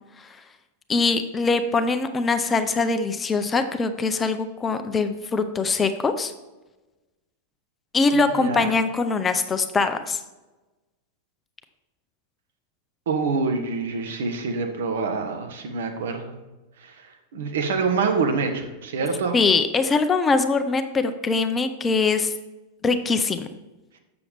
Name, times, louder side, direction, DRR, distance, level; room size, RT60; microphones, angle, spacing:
voice 1, 0.9-6.3 7.9-10.2 19.3-22.3 22.8-23.5, left 4 dB, 20° left, 8 dB, 0.5 m, -22 dB
voice 2, 8.1-8.7 13.1-16.3 16.8-19.4, right 4 dB, 60° right, 5 dB, 0.9 m, -26 dB
7.0 x 6.9 x 3.4 m, 1.1 s
figure-of-eight pair, 90°, 0 cm